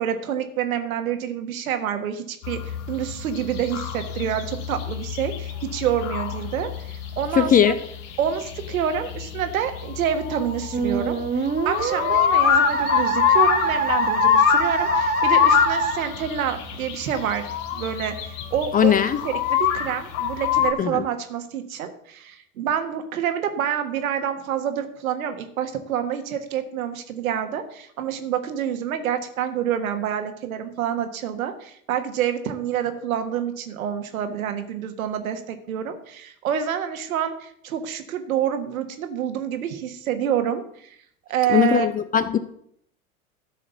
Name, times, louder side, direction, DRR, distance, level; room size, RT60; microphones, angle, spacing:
voice 1, 0.0-7.7 8.2-41.0 41.3-41.9, right 9 dB, 70° right, 8 dB, 1.5 m, -27 dB
sound 1, 2.4-20.7, left 9 dB, 60° left, 1.6 m, -25 dB
voice 2, 7.4-7.7 18.7-19.2 20.8-21.0 41.5-42.4, left 8 dB, 20° left, 13 dB, 0.5 m, -19 dB
Musical instrument, 10.7-16.0, right 4 dB, 20° right, 1.3 m, -25 dB
12.5 x 5.1 x 6.8 m, 0.67 s
figure-of-eight pair, 85°, 43 cm